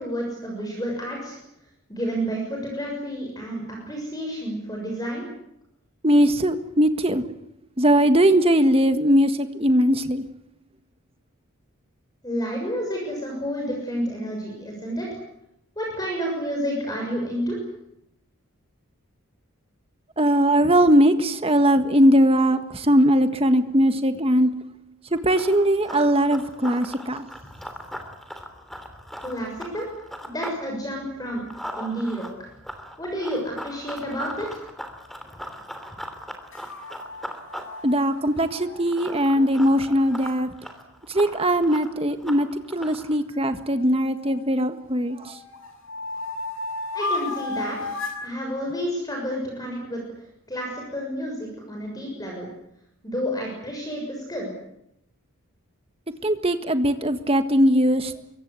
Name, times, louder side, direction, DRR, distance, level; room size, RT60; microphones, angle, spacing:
voice 1, 0.0-1.4 1.9-5.2 12.2-15.2 15.8-17.6 29.2-29.9 30.2-31.4 31.7-32.5 33.0-34.6 46.9-48.0 48.2-50.0 50.5-52.5 53.0-54.5, equal, 15° left, 0 dB, 6.6 m, -30 dB
voice 2, 6.0-7.2 7.8-10.2 20.2-24.5 25.1-27.2 37.8-40.5 41.1-42.5 42.7-45.3 56.2-58.1, equal, 25° right, 9 dB, 1.6 m, -20 dB
Run, 25.1-30.6 30.9-43.2, equal, ahead, 3.1 m, -39 dB
sound 1, 36.5-40.4 43.3-44.6 45.1-48.3, left 3 dB, 65° left, 6.7 m, -34 dB
25.5 x 23.0 x 8.3 m, 0.79 s
head